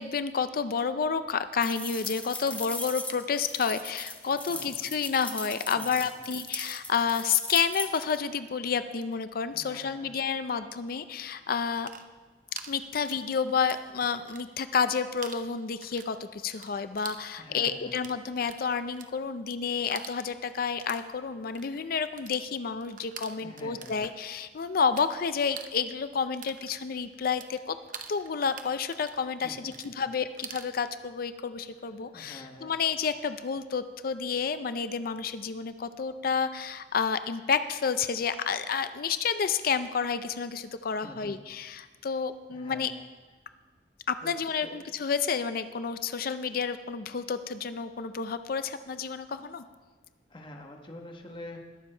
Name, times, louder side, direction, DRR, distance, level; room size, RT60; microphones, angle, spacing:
voice 1, 0.0-11.9 12.7-27.8 28.1-42.9 44.1-49.6, left 6 dB, 55° left, 11 dB, 0.5 m, -30 dB
sound 1, 1.6-8.2, left 2 dB, 10° left, 0.8 m, -38 dB
voice 2, 4.3-4.9 5.8-6.1 9.5-10.2 17.4-18.0 23.4-24.0 29.4-29.9 32.0-32.7 41.0-41.5 42.5-43.1 44.2-44.3 44.6-44.8 50.3-51.6, left 1 dB, 30° left, 2 dB, 1.2 m, -46 dB
sound 2, 11.8-13.9 14.2-14.9 15.2-25.1 25.4-30.7, right 7 dB, 50° right, 0.8 m, -46 dB
21.0 x 7.3 x 4.5 m, 1.3 s
head